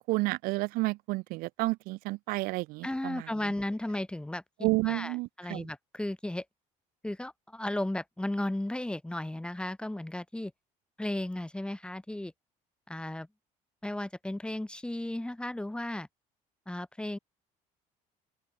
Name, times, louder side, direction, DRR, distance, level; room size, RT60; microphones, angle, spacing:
voice 1, 0.0-3.3 4.6-5.7, right 23 dB, 75° right, 0.5 m, -31 dB
voice 2, 2.8-6.4 7.0-10.5 11.0-12.3 12.9-13.3 13.8-16.1 16.7-17.2, left 1 dB, 5° left, 1.0 m, -35 dB
open air
supercardioid pair, 90°, 15 cm